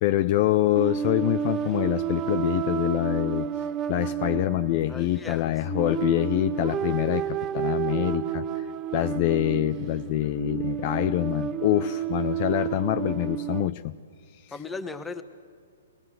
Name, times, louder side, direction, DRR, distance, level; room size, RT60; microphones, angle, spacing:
voice 1, 0.0-3.5 3.9-8.7 8.9-14.0, left 15 dB, 40° left, 10 dB, 0.6 m, -25 dB
sound 1, 0.7-13.7, right 10 dB, 25° right, 0.7 m, -31 dB
voice 2, 4.9-5.6 14.5-15.2, left 3 dB, 10° left, 8 dB, 1.3 m, -37 dB
23.0 x 19.0 x 7.9 m, 2.1 s
hypercardioid pair, 140°, 0 cm